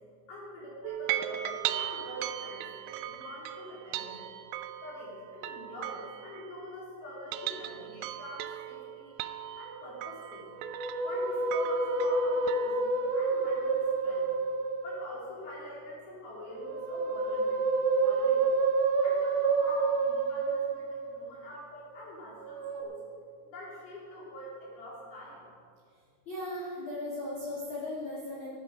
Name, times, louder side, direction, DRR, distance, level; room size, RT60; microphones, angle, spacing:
voice 1, 0.3-4.3 4.8-9.1 9.5-10.5 11.0-14.3 14.8-18.5 19.0-23.0 23.4-25.4, left 1 dB, 60° left, -5 dB, 4.8 m, -45 dB
sound 1, 0.8-6.8 7.2-12.9, right 13 dB, 90° right, 2.9 m, -38 dB
Musical instrument, 10.5-15.1 16.4-21.3 22.4-22.8, right 3 dB, 70° right, 2.6 m, -29 dB
voice 2, 26.3-28.5, left 1 dB, 40° left, -6 dB, 1.9 m, -37 dB
12.5 x 12.0 x 5.1 m, 2.3 s
omnidirectional pair, 5.1 m